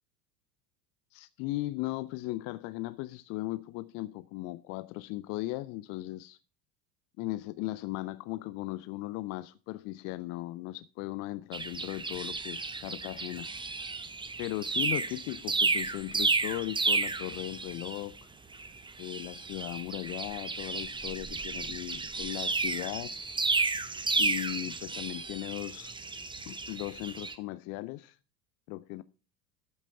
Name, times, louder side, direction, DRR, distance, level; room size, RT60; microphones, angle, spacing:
voice 1, 1.1-6.4 7.2-13.5 14.4-18.3 19.0-23.1 24.2-25.9 26.5-28.2 28.7-29.0, left 18 dB, 35° left, 0.4 m, -37 dB
sound 1, 11.5-18.2 18.5-27.3, right 3 dB, 10° right, 0.9 m, -32 dB
13.5 x 6.0 x 5.5 m
figure-of-eight pair, 80°, 50 cm